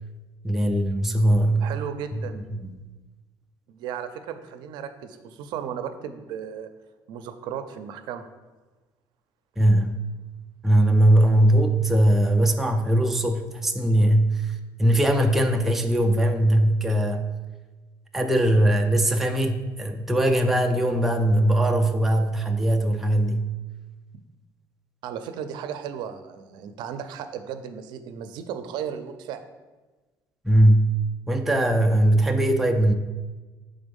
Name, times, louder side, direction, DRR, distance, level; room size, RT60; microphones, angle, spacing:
voice 1, 0.4-1.7 2.6-2.8 9.6-10.0 10.6-17.3 18.1-23.5 30.4-30.8 31.3-32.9, right 1 dB, 5° right, 3 dB, 0.4 m, -20 dB
voice 2, 1.6-2.4 3.7-6.7 7.1-8.2 25.0-29.4, right 8 dB, 70° right, 9 dB, 0.5 m, -35 dB
6.1 x 3.8 x 5.2 m, 1.2 s
cardioid pair, 165°, 8 cm